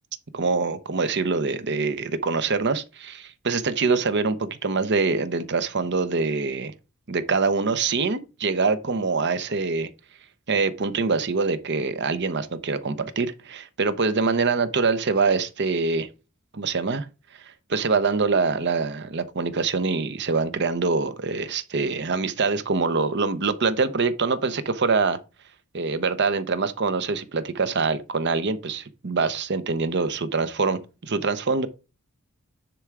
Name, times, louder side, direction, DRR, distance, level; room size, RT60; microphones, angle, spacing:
voice 1, 0.3-6.7 7.1-9.9 10.5-16.1 16.5-17.1 17.4-25.2 25.7-31.7, right 4 dB, 50° right, 0.8 m, -24 dB
10.0 x 3.7 x 4.6 m
head